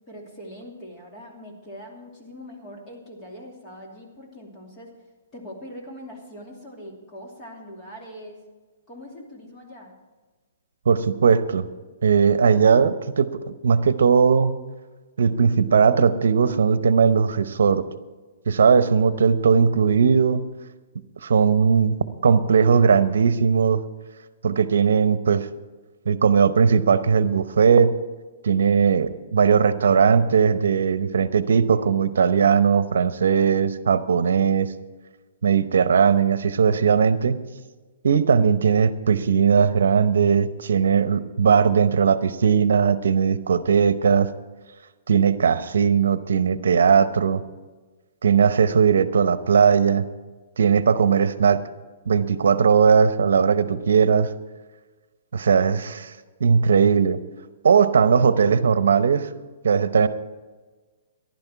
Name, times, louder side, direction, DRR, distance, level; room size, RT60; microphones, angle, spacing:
voice 1, 0.1-4.9 5.3-8.4 8.9-9.9 55.7-56.0, equal, 20° left, -2 dB, 2.8 m, -42 dB
voice 2, 10.9-11.7 12.0-13.4 13.6-14.6 15.2-17.8 18.5-20.4 21.2-22.0 22.2-23.8 24.4-25.5 26.1-27.9 28.4-34.7 35.4-37.4 38.0-44.3 45.1-47.4 48.2-50.1 50.6-51.6 52.1-54.3 55.3-56.1 56.4-57.2 57.6-59.3 59.6-60.1, right 6 dB, 85° right, 13 dB, 0.8 m, -18 dB
15.0 x 11.5 x 4.6 m, 1.3 s
hypercardioid pair, 165°, 0 cm